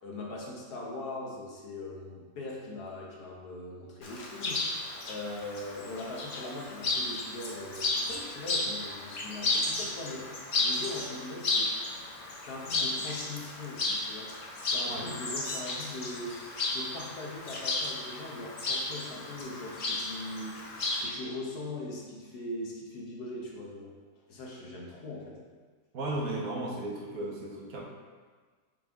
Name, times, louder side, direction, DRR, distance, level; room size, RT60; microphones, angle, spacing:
voice 1, 0.0-4.6 5.0-11.7 12.5-14.3 14.7-16.4 16.7-20.6 21.0-23.9 24.3-25.4 26.0-26.4, left 2 dB, 90° left, -2 dB, 1.6 m, -40 dB
Chirp tweet, 4.0-21.1, left 2 dB, 45° left, 0.7 m, -33 dB
voice 2, 25.9-27.8, right 2 dB, 65° right, -2 dB, 1.4 m, -35 dB
5.6 x 5.2 x 3.5 m, 1.4 s
omnidirectional pair, 1.6 m